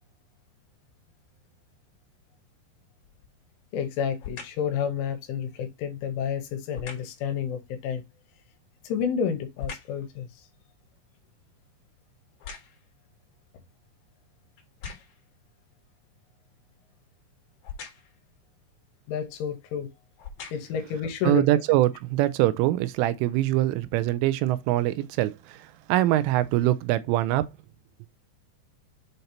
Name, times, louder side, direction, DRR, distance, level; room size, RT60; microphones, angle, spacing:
sound 1, 3.0-3.4 4.2-4.7 6.7-7.2 8.6-10.1 10.5-13.0 13.7-13.8 14.6-15.3 17.6-18.2 19.2-19.4 20.0-20.9 21.5-21.6, left 6 dB, 55° left, 2.3 m, -42 dB
voice 1, 3.7-8.0 8.8-10.3 19.1-19.9 20.5-21.5, left 7 dB, 85° left, 3.4 m, -30 dB
voice 2, 21.2-27.5, right 15 dB, 85° right, 3.0 m, -23 dB
7.8 x 2.8 x 5.2 m
omnidirectional pair, 5.7 m